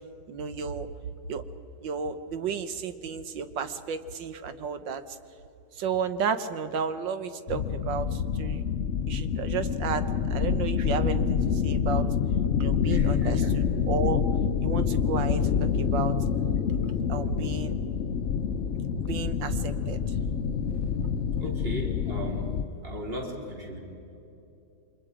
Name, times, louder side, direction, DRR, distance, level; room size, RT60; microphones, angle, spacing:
voice 1, 0.3-0.9 1.3-1.4 1.8-5.2 5.7-8.6 9.1-12.1 12.6-14.2 14.6-16.2 16.8-17.8 19.0-20.2 21.4-21.5, right 6 dB, 90° right, 10 dB, 1.8 m, -32 dB
sound 1, 7.5-22.6, left 7 dB, 55° left, 0.8 m, -27 dB
voice 2, 12.9-13.5 21.4-22.5 22.8-23.8, equal, 30° right, -1 dB, 3.7 m, -36 dB
29.5 x 24.5 x 5.0 m, 3.0 s
omnidirectional pair, 1.9 m